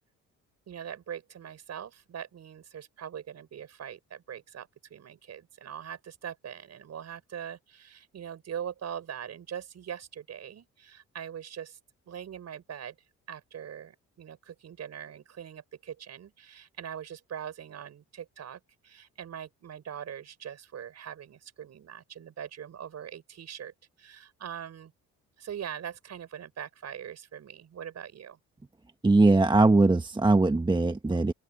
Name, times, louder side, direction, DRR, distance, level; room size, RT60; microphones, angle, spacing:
voice 1, 0.7-11.8 12.1-13.0 13.3-24.9 25.4-28.4, right 8 dB, 60° right, 5.9 m, -42 dB
voice 2, 29.0-31.3, right 2 dB, 15° right, 1.4 m, -21 dB
cardioid pair, 90°, 30 cm